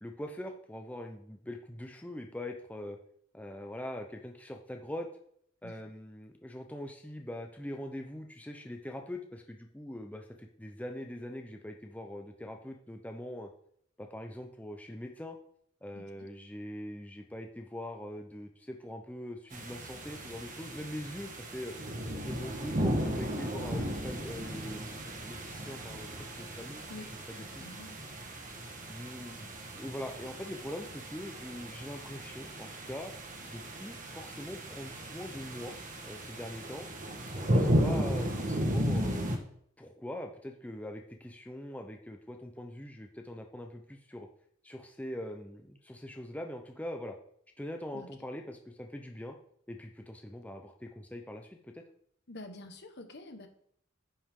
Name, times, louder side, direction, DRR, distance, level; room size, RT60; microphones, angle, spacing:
voice 1, 0.0-3.0 3.3-5.1 5.6-13.5 14.0-15.4 15.8-21.7 22.1-26.8 27.1-27.6 28.9-29.5 29.8-33.1 33.5-35.7 36.0-36.9 37.4-39.4 39.8-44.3 44.6-47.1 47.6-49.3 49.7-51.8, left 1 dB, 5° left, 3 dB, 0.7 m, -42 dB
voice 2, 15.9-16.3 26.9-27.1 27.4-28.0 47.9-48.1 52.3-53.5, left 2 dB, 55° left, 5 dB, 1.4 m, -47 dB
sound 1, 19.5-39.4, equal, 40° right, 1.4 m, -35 dB
10.0 x 8.4 x 3.7 m, 0.67 s
head